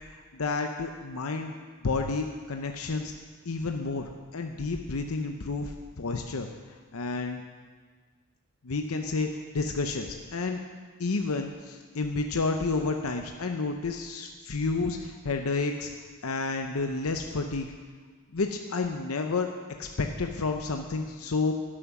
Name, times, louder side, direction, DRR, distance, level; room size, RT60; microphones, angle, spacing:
voice 1, 0.1-1.5 1.8-3.1 3.5-6.5 6.9-7.4 8.6-10.6 11.0-15.9 16.2-17.7 18.3-19.5 19.8-21.5, left 3 dB, 85° left, 4 dB, 0.7 m, -30 dB
11.0 x 9.9 x 6.0 m, 1.5 s
head